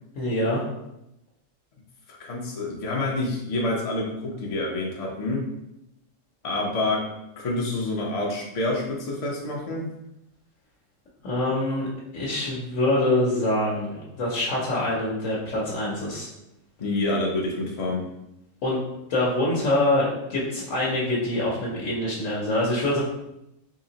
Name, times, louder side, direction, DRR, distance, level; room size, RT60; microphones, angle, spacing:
voice 1, 0.1-0.6 11.2-11.9 12.1-16.3 18.6-18.8 19.1-23.0, left 1 dB, 80° left, -5 dB, 1.2 m, -25 dB
voice 2, 2.2-5.5 6.4-7.1 7.4-9.9 16.8-18.0, left 2 dB, 50° left, -2 dB, 0.4 m, -27 dB
3.9 x 2.8 x 2.7 m, 0.86 s
omnidirectional pair, 1.3 m